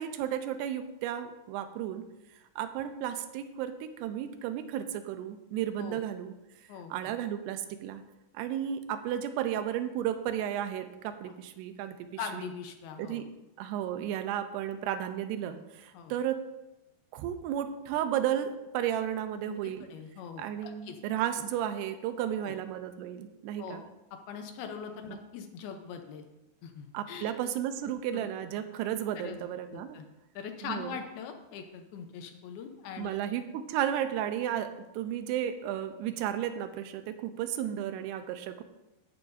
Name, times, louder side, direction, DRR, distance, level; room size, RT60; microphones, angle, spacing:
voice 1, 0.0-2.0 2.6-6.3 6.9-8.0 8.3-12.1 12.3-12.5 13.0-13.3 13.6-16.4 17.1-19.9 20.4-23.8 25.1-25.2 26.9-30.0 30.6-31.0 33.0-34.7 34.9-38.6, right 10 dB, 85° right, 9 dB, 2.7 m, -33 dB
voice 2, 6.7-7.1 11.3-11.4 12.2-13.2 15.9-16.1 19.5-21.0 22.4-22.5 23.6-23.8 24.1-26.3 26.6-27.3 28.1-28.3 29.2-30.1 30.4-33.2, left 7 dB, 75° left, 5 dB, 2.6 m, -42 dB
14.0 x 9.8 x 2.7 m, 0.96 s
omnidirectional pair, 4.9 m